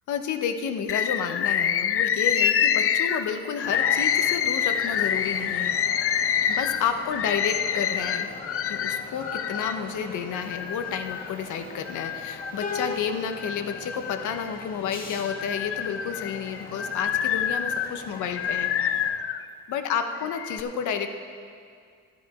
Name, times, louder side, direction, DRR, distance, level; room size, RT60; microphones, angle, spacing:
voice 1, 0.1-5.8 6.1-6.2 6.5-8.3 8.7-18.7 19.7-21.1, left 7 dB, 75° left, 7 dB, 1.0 m, -31 dB
Bird, 0.9-9.8 10.3-11.3 11.9-12.9 13.3-14.7 15.2-19.4 20.1-20.6, left 8 dB, 45° left, 0.5 m, -27 dB
sound 1, 3.6-19.1, left 3 dB, 30° left, 1.6 m, -41 dB
11.5 x 11.5 x 4.9 m, 2.2 s
cardioid pair, 90°, 30 cm